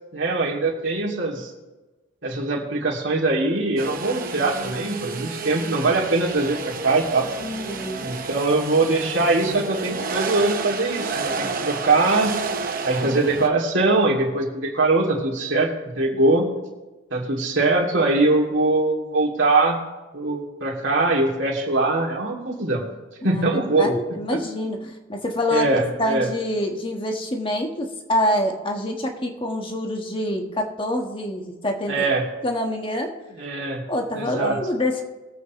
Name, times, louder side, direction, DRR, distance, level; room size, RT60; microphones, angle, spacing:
voice 1, 0.1-1.5 2.2-7.3 8.0-12.4 12.8-15.7 16.0-16.5 17.1-19.8 20.1-22.8 23.2-23.9 24.3-24.4 25.5-26.3 31.9-32.2 33.4-33.8 34.1-34.6, right 2 dB, 60° right, -2 dB, 2.6 m, -22 dB
sound 1, 3.8-13.5, right 4 dB, 45° right, 0.9 m, -30 dB
voice 2, 7.4-8.2 23.2-25.7 26.0-32.0 32.4-33.1 33.9-35.0, left 1 dB, 25° left, 2 dB, 1.4 m, -26 dB
22.0 x 8.3 x 3.1 m, 1.2 s
head